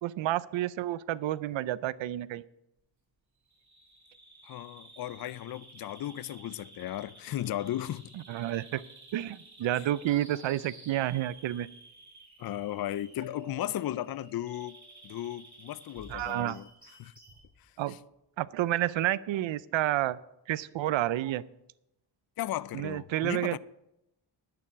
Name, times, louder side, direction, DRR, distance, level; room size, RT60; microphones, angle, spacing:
voice 1, 0.0-2.4 8.3-8.8 9.1-11.7 16.1-16.6 17.8-18.0 18.4-20.2 20.5-21.4 22.7-23.6, right 14 dB, 75° right, 0.6 m, -30 dB
Bird vocalization bird call bird song, 3.5-17.5, right 2 dB, 35° right, 3.9 m, -54 dB
voice 2, 4.4-8.1 12.4-14.8 15.0-16.7 17.0-17.1 17.6-18.0 22.4-23.6, left 13 dB, 50° left, 0.5 m, -36 dB
Mallet percussion, 13.2-15.2, left 3 dB, 85° left, 2.2 m, -50 dB
sound 1, 15.9-16.7 17.2-18.1, equal, 10° right, 5.1 m, -53 dB
10.5 x 6.9 x 8.3 m
cardioid pair, 90°, 47 cm